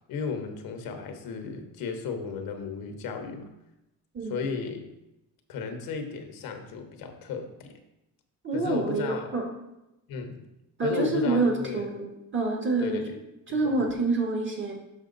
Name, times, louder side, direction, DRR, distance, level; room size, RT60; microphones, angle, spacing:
voice 1, 0.1-3.5 4.3-4.9 5.5-7.7 8.5-9.3 10.1-10.5 10.8-11.9 12.8-13.0 13.6-13.8, left 5 dB, 80° left, 5 dB, 1.1 m, -34 dB
voice 2, 4.1-4.5 8.4-9.4 10.8-12.0 12.3-13.0 13.5-14.7, right 3 dB, 35° right, 2 dB, 1.6 m, -27 dB
6.4 x 5.9 x 3.9 m, 0.92 s
cardioid pair, 120°, 35 cm